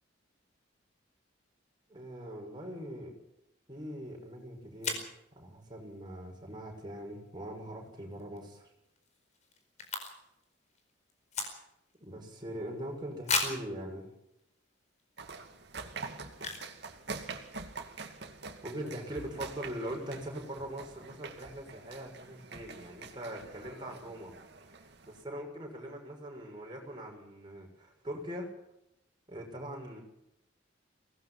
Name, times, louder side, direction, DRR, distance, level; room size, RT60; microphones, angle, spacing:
voice 1, 1.9-3.1 3.7-8.7 12.0-14.1 18.6-28.5 29.3-30.0, equal, 25° right, 0 dB, 6.7 m, -42 dB
sound 1, 4.2-4.3 4.8-5.2 8.1-8.4 8.7-8.8 9.0-10.4 10.7-11.9 12.4-12.5 13.2-13.7 14.4-14.5 15.0-15.2 16.3-16.8 17.1-17.2 17.3-17.7, left 4 dB, 35° left, 4.6 m, -35 dB
sound 2, 15.2-25.2, right 4 dB, 60° right, 2.5 m, -45 dB
23.5 x 18.5 x 5.9 m, 0.84 s
head